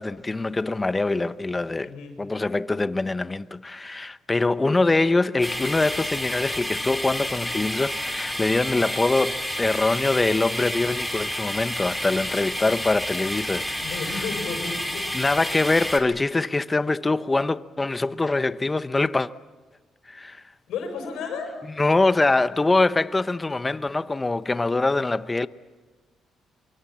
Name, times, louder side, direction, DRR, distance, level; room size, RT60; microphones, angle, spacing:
voice 1, 0.0-13.9 15.1-19.3 20.1-20.4 21.8-25.5, left 2 dB, 20° left, 0.8 m, -24 dB
voice 2, 1.8-2.2 13.8-15.0 20.7-21.5, left 5 dB, 85° left, 6.8 m, -32 dB
sound 1, 5.4-16.0, equal, ahead, 3.6 m, -30 dB
25.0 x 23.5 x 7.5 m
cardioid pair, 90°, 0 cm